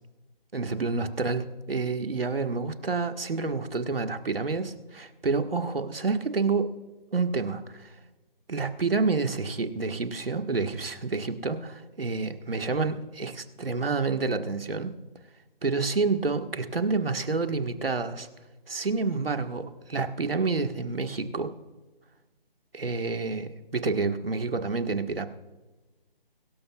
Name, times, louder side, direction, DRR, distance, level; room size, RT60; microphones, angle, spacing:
voice 1, 0.5-6.7 7.1-7.9 8.5-14.9 15.6-18.3 18.7-21.5 22.7-25.3, right 4 dB, 75° right, 6 dB, 1.7 m, -28 dB
23.5 x 13.0 x 2.4 m, 1.2 s
figure-of-eight pair, 175°, 29 cm